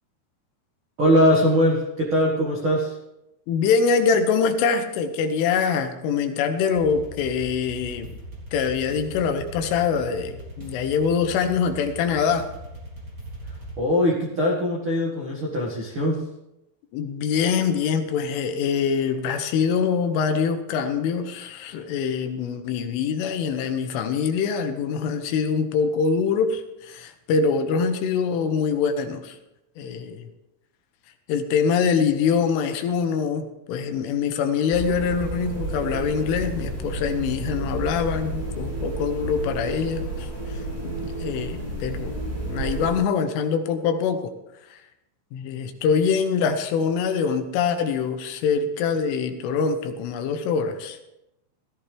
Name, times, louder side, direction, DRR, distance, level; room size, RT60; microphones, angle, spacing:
voice 1, 1.0-2.9 13.8-16.2, equal, 65° right, -2 dB, 1.2 m, -21 dB
voice 2, 3.5-8.1 8.5-12.5 16.9-29.4 29.8-30.3 31.3-42.2 42.5-44.3 44.7-44.8 45.3-51.0, left 6 dB, 80° left, 7 dB, 3.4 m, -24 dB
sound 1, 6.7-13.7, right 1 dB, 25° right, 3.4 m, -39 dB
sound 2, 34.7-42.9, right 2 dB, 5° right, 6.4 m, -31 dB
17.5 x 14.0 x 3.4 m, 0.90 s
omnidirectional pair, 5.9 m